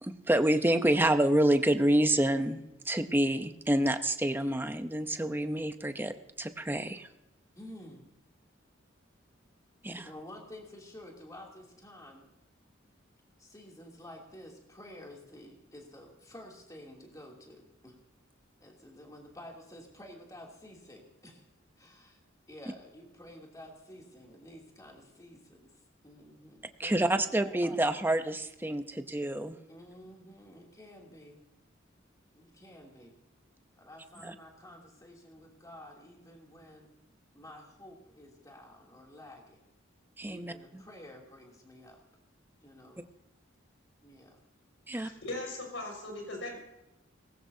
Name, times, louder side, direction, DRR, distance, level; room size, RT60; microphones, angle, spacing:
voice 1, 0.0-7.1 9.8-10.1 26.8-29.6 34.2-34.3 40.2-40.5 44.9-45.1, right 1 dB, 10° right, 8 dB, 0.7 m, -28 dB
voice 2, 7.5-8.1 10.0-12.3 13.4-18.0 18.6-21.4 21.8-22.2 22.5-25.7 26.0-28.1 29.7-31.4 32.3-33.1 33.8-36.9 37.3-39.7 40.3-42.0 42.6-43.0 44.0-44.4, left 1 dB, 20° left, -1 dB, 2.9 m, -51 dB
voice 3, 44.9-46.6, left 2 dB, 70° left, 1 dB, 5.9 m, -39 dB
19.5 x 16.5 x 2.8 m, 0.94 s
head